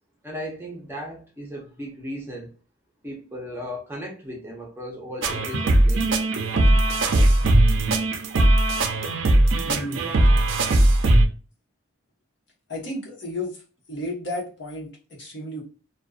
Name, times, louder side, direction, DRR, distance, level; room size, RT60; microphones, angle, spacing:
voice 1, 0.2-2.5 3.0-6.3, equal, 10° right, 0.5 m, -36 dB
sound 1, 5.2-11.3, right 1 dB, 75° right, 0.4 m, -19 dB
voice 2, 9.7-10.2 12.7-13.6 13.9-15.6, left 1 dB, 65° left, 1.0 m, -33 dB
2.5 x 2.1 x 2.3 m
head